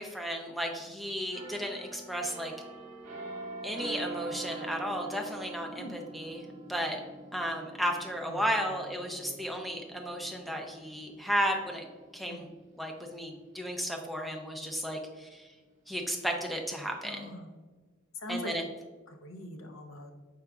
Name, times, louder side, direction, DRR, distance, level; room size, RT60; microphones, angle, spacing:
voice 1, 0.0-2.5 3.6-7.0 7.3-11.9 12.1-12.5 12.8-15.5 15.9-17.3 18.3-18.6, equal, ahead, 1 dB, 0.5 m, -34 dB
sound 1, 1.3-12.9 13.3-13.5, right 2 dB, 40° right, 1.1 m, -45 dB
voice 2, 5.7-6.2 8.3-8.8 9.2-9.4 12.2-12.5 17.0-17.5 18.1-18.6 19.1-20.1, left 1 dB, 70° left, 4 dB, 0.6 m, -43 dB
5.0 x 4.5 x 2.3 m, 1.4 s
head